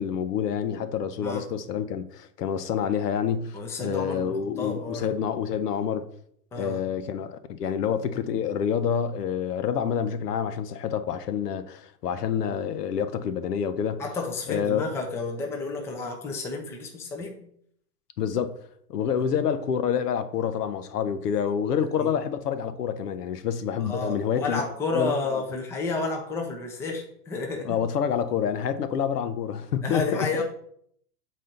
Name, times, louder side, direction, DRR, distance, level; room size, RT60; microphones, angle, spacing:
voice 1, 0.0-6.1 6.6-14.0 14.5-14.8 18.2-18.6 18.9-24.6 24.9-25.4 27.6-30.4, left 8 dB, 75° left, 0.8 m, -28 dB
voice 2, 3.5-5.1 6.5-6.8 14.0-17.4 19.2-19.3 22.0-22.1 23.8-27.8 29.8-30.4, left 3 dB, 5° left, 0.5 m, -31 dB
7.4 x 4.2 x 3.8 m
hypercardioid pair, 125°, 47 cm